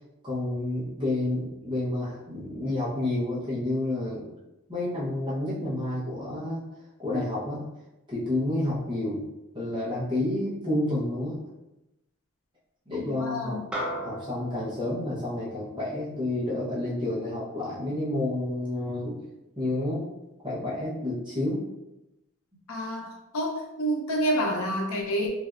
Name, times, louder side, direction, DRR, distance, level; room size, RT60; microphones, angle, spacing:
voice 1, 0.2-4.3 4.7-6.6 7.0-7.6 8.1-9.2 9.5-11.4 12.9-13.6 14.0-19.2 19.6-20.0 20.4-21.7, left 1 dB, 20° right, -9 dB, 0.8 m, -29 dB
voice 2, 13.0-13.7 22.7-25.3, equal, 80° left, 1 dB, 0.6 m, -28 dB
sound 1, 13.7-18.3, equal, 5° right, 0.4 m, -39 dB
3.2 x 2.6 x 2.4 m, 0.93 s
head